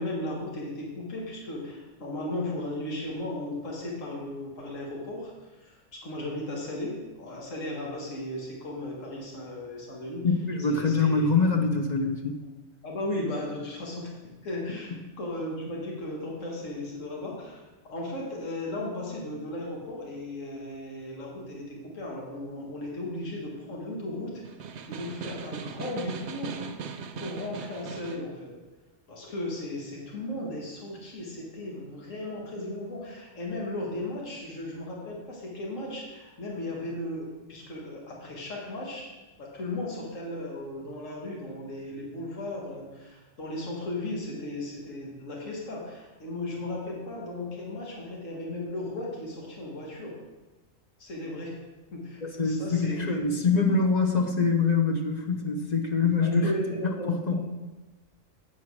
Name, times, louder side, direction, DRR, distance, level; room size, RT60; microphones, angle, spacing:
voice 1, 0.0-10.3 10.7-11.3 12.8-24.4 24.9-26.6 27.2-28.6 29.1-39.1 39.4-50.2 51.0-51.6 51.9-53.3 56.2-57.4, left 1 dB, 75° left, -2 dB, 2.0 m, -36 dB
voice 2, 10.2-12.4 14.9-15.0 52.2-56.5 56.8-57.3, left 4 dB, 40° left, 2 dB, 0.8 m, -25 dB
Snare drum, 24.4-28.3, right 6 dB, 65° right, 0.8 m, -38 dB
8.9 x 4.6 x 6.1 m, 1.2 s
omnidirectional pair, 1.4 m